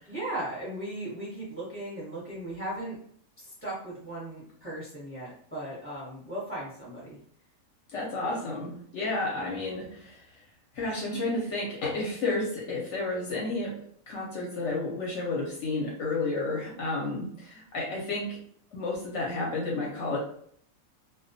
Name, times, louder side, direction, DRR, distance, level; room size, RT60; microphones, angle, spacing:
voice 1, 0.1-3.0 3.4-7.2, right 1 dB, 10° right, -7 dB, 0.7 m, -37 dB
voice 2, 7.9-10.2 10.7-13.8 14.1-18.4 18.7-20.2, left 2 dB, 65° left, -3 dB, 0.8 m, -31 dB
2.2 x 2.2 x 2.6 m, 0.62 s
omnidirectional pair, 1.5 m